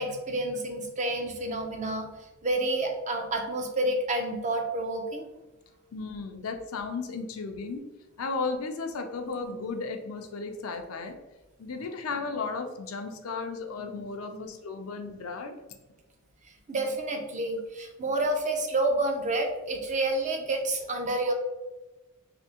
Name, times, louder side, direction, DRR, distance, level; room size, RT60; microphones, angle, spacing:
voice 1, 0.0-2.1 2.4-5.3 16.7-21.3, right 2 dB, 35° right, 3 dB, 0.5 m, -29 dB
voice 2, 5.9-7.8 8.2-11.2 11.6-15.5, left 4 dB, 75° left, 5 dB, 0.5 m, -34 dB
3.4 x 2.7 x 2.8 m, 1.1 s
head